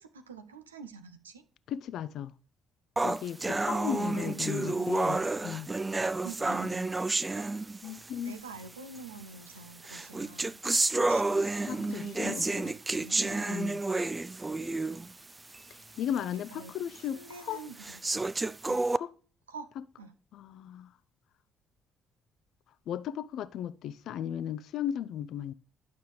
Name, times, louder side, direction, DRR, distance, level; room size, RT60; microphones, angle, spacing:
voice 1, 0.0-1.4 3.9-5.0 6.2-6.9 8.2-10.6 10.9-12.8 13.0-13.6 16.2-16.7 17.1-18.0 18.7-18.8 19.5-19.7 20.0-20.1, right 4 dB, 85° right, 0.6 m, -46 dB
voice 2, 1.7-2.3 3.0-5.7 7.8-8.4 11.6-12.6 13.5-13.8 15.7-17.6 18.9-19.1 20.3-20.9 22.9-25.5, left 10 dB, 60° left, 0.4 m, -36 dB
sound 1, 3.0-8.1 9.0-9.1 9.8-15.1 15.5-15.6 16.2-16.3 16.9-17.0 17.8-19.0, right 2 dB, 20° right, 0.4 m, -30 dB
11.5 x 6.6 x 3.3 m
figure-of-eight pair, 45°, 0 cm